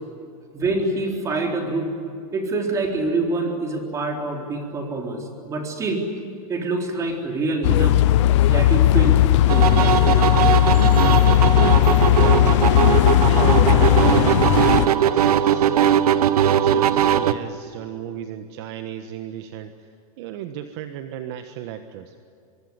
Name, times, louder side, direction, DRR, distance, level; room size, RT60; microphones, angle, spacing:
voice 1, 0.5-1.9 2.3-6.1 6.5-8.0 8.5-9.2 9.5-9.9, right 2 dB, 15° right, 1 dB, 3.9 m, -25 dB
sound 1, 7.6-14.9, left 14 dB, 50° left, 0.7 m, -16 dB
sound 2, 9.5-17.3, right 9 dB, 90° right, 1.4 m, -19 dB
voice 2, 12.1-12.9 13.3-15.7 16.3-19.9 20.2-22.1, right 10 dB, 45° right, 7 dB, 1.4 m, -35 dB
25.0 x 23.0 x 9.8 m, 2.5 s
supercardioid pair, 160°, 19 cm